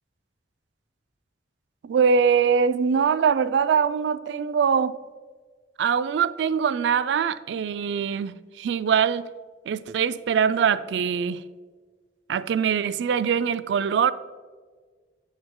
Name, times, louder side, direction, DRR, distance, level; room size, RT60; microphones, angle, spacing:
voice 1, 1.8-5.0 5.8-9.3 9.7-11.4 12.3-14.1, right 7 dB, 80° right, 0.3 m, -23 dB
6.8 x 6.3 x 3.6 m
head